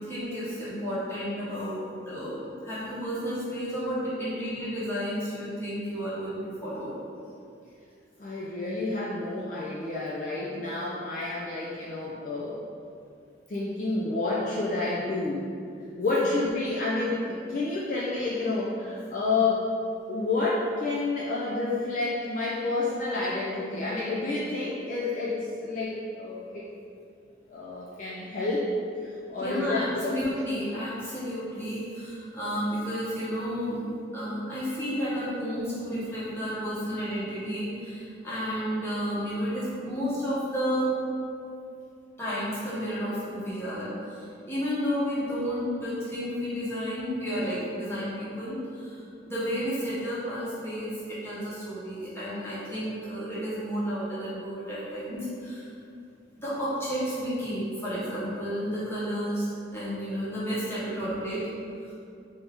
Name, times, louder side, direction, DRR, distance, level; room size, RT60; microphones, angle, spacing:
voice 1, 0.0-1.8 2.1-6.9 29.4-33.8 34.1-41.0 42.2-49.0 49.3-55.7 56.4-59.5 59.7-61.5 61.9-62.0, equal, 15° left, -10 dB, 1.0 m, -31 dB
voice 2, 8.2-12.6 13.5-15.5 16.0-19.7 20.1-26.6 27.5-28.7 29.0-30.1, left 3 dB, 40° left, -6 dB, 0.4 m, -29 dB
3.4 x 2.7 x 3.5 m, 2.4 s
head